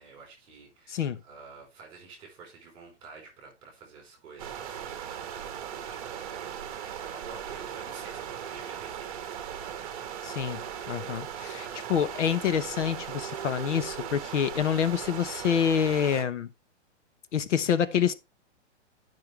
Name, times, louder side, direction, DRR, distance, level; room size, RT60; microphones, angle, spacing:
voice 1, 0.0-6.7 7.0-10.2, right 4 dB, 15° right, 4.1 m, -50 dB
voice 2, 0.9-1.2 10.2-16.5 17.3-18.1, left 8 dB, 75° left, 1.1 m, -27 dB
sound 1, 4.4-16.2, right 9 dB, 30° right, 1.2 m, -38 dB
10.5 x 5.8 x 3.3 m
hypercardioid pair, 180°, 36 cm